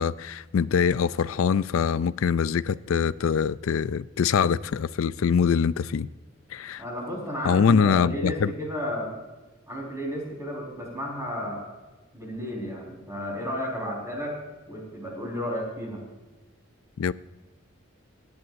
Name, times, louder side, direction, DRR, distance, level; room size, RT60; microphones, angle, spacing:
voice 1, 0.0-6.1 6.5-6.8 7.4-8.5 17.0-17.1, left 6 dB, 85° left, 0.4 m, -23 dB
voice 2, 6.8-9.1 9.7-11.6 12.1-14.4 14.7-16.0, equal, 15° right, 4.4 m, -32 dB
26.5 x 10.5 x 2.6 m
head